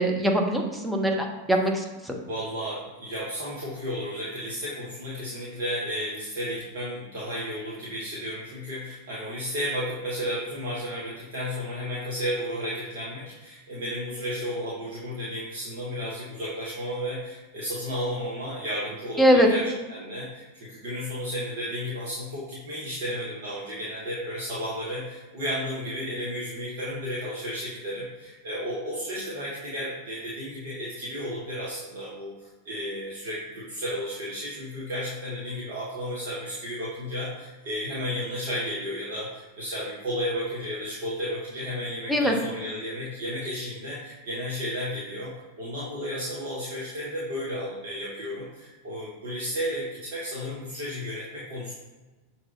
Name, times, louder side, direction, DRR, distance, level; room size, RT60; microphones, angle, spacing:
voice 1, 0.0-2.2 19.2-19.5 42.1-42.4, equal, 5° right, 1 dB, 0.6 m, -22 dB
voice 2, 2.2-32.3 32.6-51.7, equal, 55° right, -7 dB, 0.9 m, -33 dB
6.0 x 2.8 x 2.5 m, 1.2 s
figure-of-eight pair, 90°, 0 cm